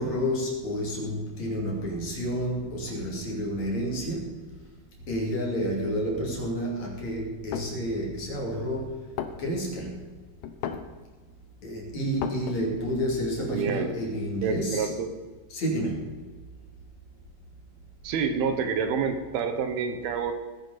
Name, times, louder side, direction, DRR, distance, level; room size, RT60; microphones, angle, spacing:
voice 1, 0.0-4.4 5.1-9.0 9.4-10.0 11.6-14.9 15.5-16.1, equal, 50° left, -1 dB, 3.7 m, -30 dB
sound 1, 7.3-7.8 8.5-8.6 8.9-9.0 9.2-9.8 10.4-11.0 11.4-11.5 11.7-12.8, left 8 dB, 85° left, 1.5 m, -34 dB
voice 2, 13.5-13.9 14.4-15.1 18.0-20.3, right 6 dB, 80° right, 7 dB, 3.1 m, -28 dB
19.5 x 10.5 x 4.1 m, 1.3 s
omnidirectional pair, 4.5 m